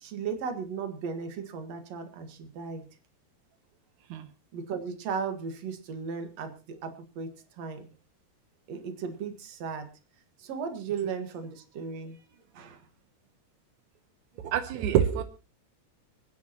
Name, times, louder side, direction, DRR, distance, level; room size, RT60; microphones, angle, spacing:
voice 1, 0.0-2.8 4.5-7.8 8.7-9.9 10.4-12.2 12.5-12.8, right 6 dB, 65° right, 7 dB, 2.8 m, -36 dB
voice 2, 14.4-15.2, right 10 dB, 85° right, 8 dB, 2.3 m, -26 dB
28.0 x 9.6 x 2.9 m, 0.31 s
omnidirectional pair, 3.3 m